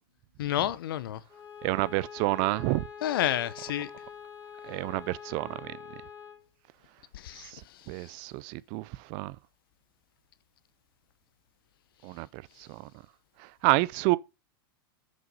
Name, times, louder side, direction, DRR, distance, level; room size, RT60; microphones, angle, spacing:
voice 1, 0.4-1.2 3.0-3.9 7.1-8.1, left 12 dB, 75° left, 0.7 m, -31 dB
Bowed string instrument, 1.3-6.5, left 7 dB, 20° left, 2.6 m, -45 dB
voice 2, 1.6-2.9 4.7-5.8 7.5-7.6 7.9-9.4 12.0-12.8 13.6-14.2, right 21 dB, 45° right, 0.4 m, -29 dB
6.4 x 5.3 x 5.4 m
supercardioid pair, 140°, 12 cm